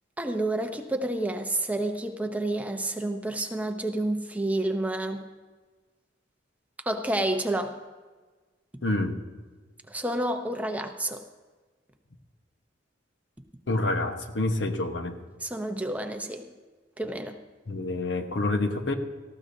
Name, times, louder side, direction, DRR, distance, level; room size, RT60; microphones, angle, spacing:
voice 1, 0.2-5.3 6.8-7.8 9.9-11.2 15.4-16.5 17.0-17.4, right 1 dB, 10° right, 5 dB, 0.7 m, -29 dB
voice 2, 8.8-9.2 13.7-15.2 17.7-18.9, left 2 dB, 80° left, 5 dB, 1.2 m, -27 dB
18.5 x 14.5 x 2.7 m, 1.4 s
head